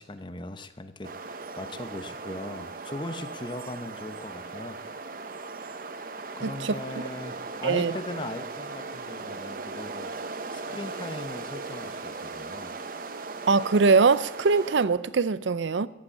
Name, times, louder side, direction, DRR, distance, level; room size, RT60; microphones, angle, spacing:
voice 1, 0.0-4.8 6.3-10.1 10.5-12.7, left 2 dB, 25° left, 0.8 m, -39 dB
sound 1, 1.0-14.9, right 3 dB, 50° right, 0.9 m, -38 dB
voice 2, 6.4-6.7 7.6-7.9 13.5-15.9, right 4 dB, 80° right, 0.5 m, -22 dB
14.5 x 8.1 x 8.4 m
head